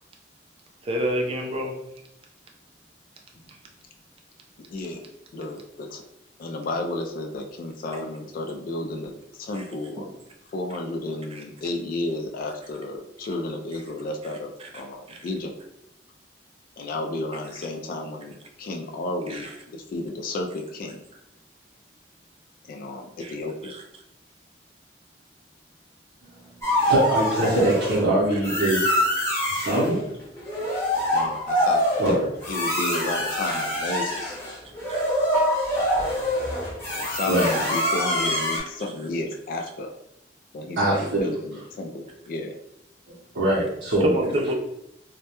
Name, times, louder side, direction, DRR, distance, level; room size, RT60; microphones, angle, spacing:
voice 1, 0.8-1.7 9.5-9.7 11.3-11.4 14.6-14.8 15.1-15.3 19.3-19.5 23.2-23.3 23.6-23.8 34.0-34.1 34.9-35.1 44.0-44.5, equal, 35° right, 2 dB, 0.4 m, -28 dB
voice 2, 4.7-5.0 5.3-6.0 6.4-9.1 9.4-10.1 10.5-15.5 16.8-21.0 22.7-23.7 31.1-32.2 32.5-34.4 36.9-39.9 40.5-42.5, left 2 dB, 50° left, 3 dB, 0.3 m, -32 dB
sound 1, 26.6-28.0 28.4-29.9 30.4-38.6, equal, 15° left, 0.7 m, -25 dB
voice 3, 26.8-28.9 29.5-30.0 32.0-32.3 37.2-37.5 40.8-41.3 43.1-44.5, right 1 dB, 85° right, -8 dB, 0.6 m, -23 dB
2.2 x 2.0 x 2.8 m, 0.82 s
head